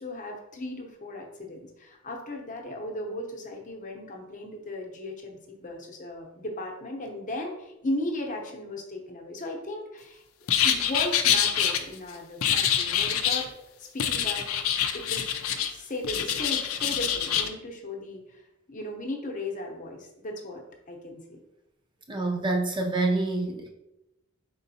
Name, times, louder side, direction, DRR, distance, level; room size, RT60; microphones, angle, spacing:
voice 1, 0.0-13.5 13.8-14.4 14.9-15.3 15.7-18.2 18.7-20.6 20.9-21.4, left 1 dB, 40° left, 2 dB, 0.8 m, -36 dB
sound 1, 10.5-11.8 12.4-13.5 14.0-15.7 16.0-17.5, left 9 dB, 85° left, 0.5 m, -25 dB
voice 2, 22.1-23.7, right 2 dB, 25° right, 3 dB, 0.6 m, -27 dB
5.2 x 3.7 x 2.7 m, 0.92 s
head